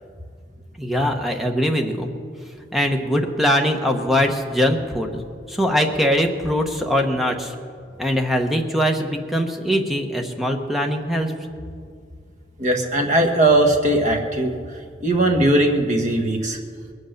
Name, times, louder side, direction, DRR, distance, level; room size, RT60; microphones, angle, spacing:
voice 1, 0.8-2.1 2.7-5.2 5.5-7.5 8.0-11.3, equal, ahead, 3 dB, 1.0 m, -21 dB
voice 2, 12.6-14.5 15.0-16.6, right 1 dB, 40° right, 3 dB, 1.4 m, -19 dB
21.5 x 8.1 x 6.6 m, 2.2 s
head